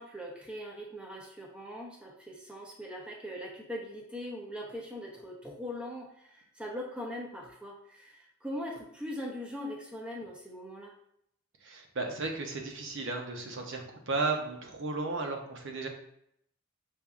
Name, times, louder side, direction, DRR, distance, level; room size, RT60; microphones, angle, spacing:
voice 1, 0.0-10.9 15.0-15.3, equal, 5° right, -1 dB, 0.7 m, -41 dB
voice 2, 11.6-15.9, right 3 dB, 60° right, 3 dB, 0.8 m, -34 dB
6.8 x 2.6 x 2.4 m, 0.72 s
head